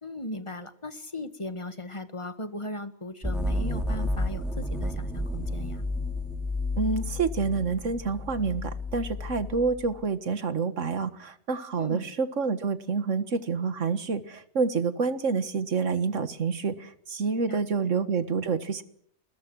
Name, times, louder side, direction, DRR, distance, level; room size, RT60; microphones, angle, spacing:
voice 1, 0.0-5.8 11.8-12.1 17.5-17.9, left 1 dB, 20° left, 10 dB, 1.6 m, -38 dB
sound 1, 3.2-10.0, left 1 dB, ahead, 3.2 m, -31 dB
voice 2, 6.8-18.8, right 5 dB, 55° right, 12 dB, 1.9 m, -28 dB
28.0 x 21.5 x 6.3 m, 0.64 s
omnidirectional pair, 1.5 m